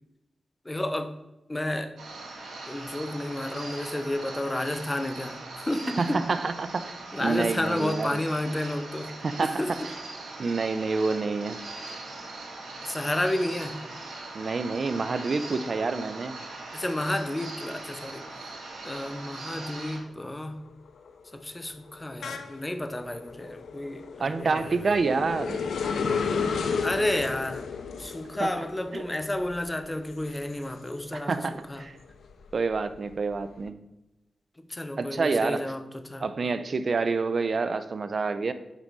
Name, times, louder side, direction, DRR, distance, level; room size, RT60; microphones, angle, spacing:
voice 1, 0.6-1.1 1.5-1.9 2.7-6.2 7.1-9.1 9.4-9.7 12.8-13.8 16.7-18.2 18.8-20.6 21.3-24.7 26.8-27.6 28.0-31.3 31.7-31.8 34.7-36.3, left 1 dB, 20° left, 8 dB, 0.9 m, -31 dB
sound 1, 2.0-20.0, right 2 dB, 85° right, 2.5 m, -40 dB
voice 2, 6.0-8.2 9.2-9.9 10.4-11.6 14.3-16.4 24.2-25.6 28.4-28.6 28.9-29.0 31.1-32.0 32.5-33.8 35.0-35.7 36.2-38.5, right 4 dB, 60° right, 12 dB, 0.6 m, -28 dB
sound 2, 19.3-19.7 20.1-31.4 31.8-33.5, left 5 dB, 85° left, 0.6 m, -34 dB
8.9 x 5.2 x 4.1 m, 0.99 s
cardioid pair, 50°, 0 cm